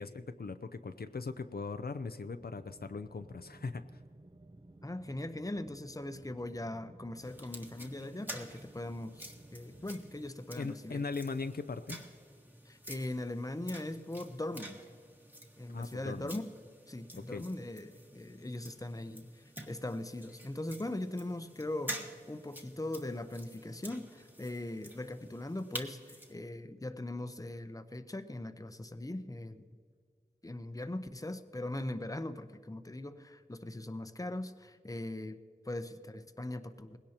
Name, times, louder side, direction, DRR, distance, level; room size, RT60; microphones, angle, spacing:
voice 1, 0.0-4.0 10.6-12.0 15.7-16.3 17.1-17.4, left 4 dB, 70° left, 9 dB, 0.5 m, -39 dB
sound 1, 2.4-10.3, right 2 dB, 30° right, 0.6 m, -57 dB
voice 2, 4.8-11.0 12.7-14.8 15.6-16.4 16.9-19.3 19.7-22.0 22.3-29.6 30.4-35.4 35.7-37.0, left 1 dB, 20° left, 9 dB, 0.7 m, -40 dB
sound 2, 7.2-26.3, equal, 10° right, 1.5 m, -49 dB
19.5 x 17.0 x 2.9 m, 2.2 s
wide cardioid pair, 45°, 16 cm